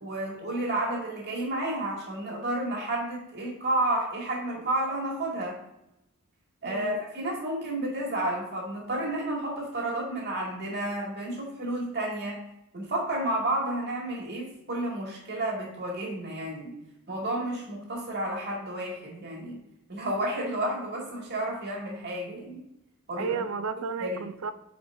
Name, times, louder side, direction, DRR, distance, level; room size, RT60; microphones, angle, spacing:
voice 1, 0.0-5.6 6.6-12.4 12.7-16.7 17.1-19.6 19.9-22.6 23.1-23.3 24.0-24.2, right 1 dB, 50° right, -2 dB, 2.2 m, -31 dB
voice 2, 6.6-7.0 23.2-24.5, right 5 dB, 70° right, 11 dB, 0.5 m, -32 dB
8.2 x 4.8 x 2.6 m, 0.87 s
head